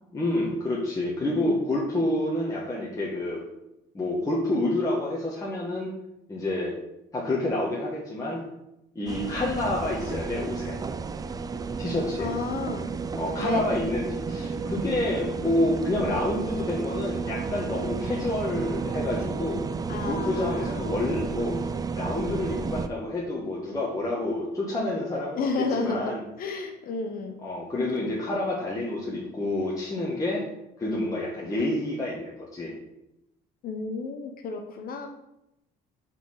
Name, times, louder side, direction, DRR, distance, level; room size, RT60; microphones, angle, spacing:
voice 1, 0.1-3.4 3.9-5.9 6.3-6.7 7.1-8.4 8.9-10.8 11.8-12.3 13.2-19.6 20.0-25.5 25.8-26.2 27.4-30.4 30.8-32.7, left 1 dB, 20° left, -5 dB, 1.2 m, -28 dB
sound 1, 9.1-22.9, right 5 dB, 20° right, 0.4 m, -32 dB
voice 2, 12.2-12.9 13.4-13.7 16.1-16.2 19.9-21.3 25.3-27.4 33.6-35.1, left 3 dB, 60° left, 4 dB, 0.8 m, -32 dB
4.7 x 4.3 x 5.5 m, 0.87 s
cardioid pair, 110°, 17 cm